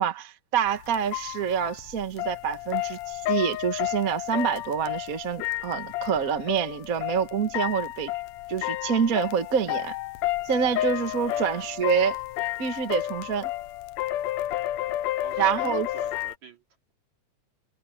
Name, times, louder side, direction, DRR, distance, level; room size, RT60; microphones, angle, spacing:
voice 1, 0.0-8.1 8.5-10.0 10.4-12.2 12.6-13.5 15.4-15.9, right 7 dB, 45° right, 1.1 m, -27 dB
sound 1, 0.7-16.4, left 14 dB, 75° left, 1.8 m, -31 dB
voice 2, 11.2-11.9 15.2-16.6, right 7 dB, 65° right, 4.3 m, -45 dB
omnidirectional pair, 3.5 m